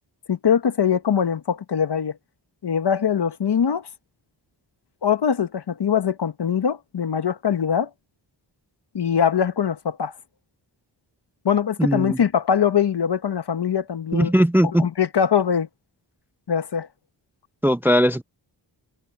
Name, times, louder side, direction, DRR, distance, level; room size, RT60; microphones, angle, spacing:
voice 1, 0.3-2.2 2.6-3.9 5.0-7.9 8.9-10.1 11.4-14.3 14.6-15.7 16.5-16.9, left 8 dB, 65° left, 1.3 m, -22 dB
voice 2, 11.8-12.2 14.1-14.9 17.6-18.2, equal, 5° right, 0.4 m, -19 dB
wide cardioid pair, 75°, 44 cm